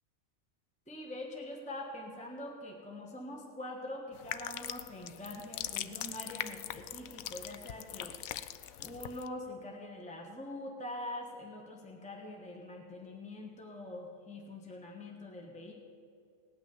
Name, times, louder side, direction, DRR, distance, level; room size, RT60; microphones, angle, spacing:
voice 1, 0.9-8.2 8.8-15.7, left 1 dB, 5° left, 1 dB, 1.2 m, -44 dB
sound 1, 4.1-9.3, left 12 dB, 80° left, 1.0 m, -41 dB
18.0 x 6.1 x 9.4 m, 2.4 s
omnidirectional pair, 1.5 m